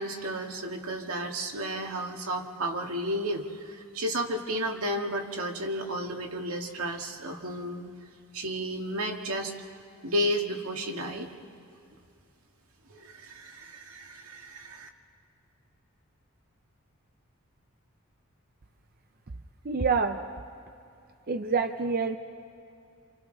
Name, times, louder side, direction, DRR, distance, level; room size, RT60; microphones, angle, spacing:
voice 1, 0.0-7.9 8.3-9.5 10.0-11.3 12.9-14.9, equal, 85° right, 2 dB, 2.0 m, -32 dB
voice 2, 19.6-20.2 21.3-22.2, right 4 dB, 45° right, 7 dB, 0.7 m, -26 dB
29.0 x 27.5 x 4.0 m, 2.6 s
head